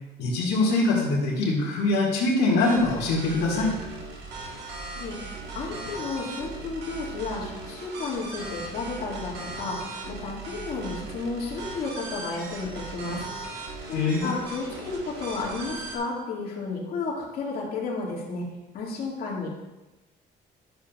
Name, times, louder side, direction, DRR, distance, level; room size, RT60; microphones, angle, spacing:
voice 1, 0.2-3.7 13.9-14.3, left 2 dB, 85° left, -4 dB, 2.0 m, -23 dB
sound 1, 2.6-16.0, right 3 dB, 85° right, 1.5 m, -38 dB
voice 2, 5.5-13.2 13.5-18.4 18.7-19.5, left 3 dB, 60° left, -4 dB, 2.1 m, -32 dB
11.0 x 7.2 x 2.4 m, 1.1 s
cardioid pair, 110°, 17 cm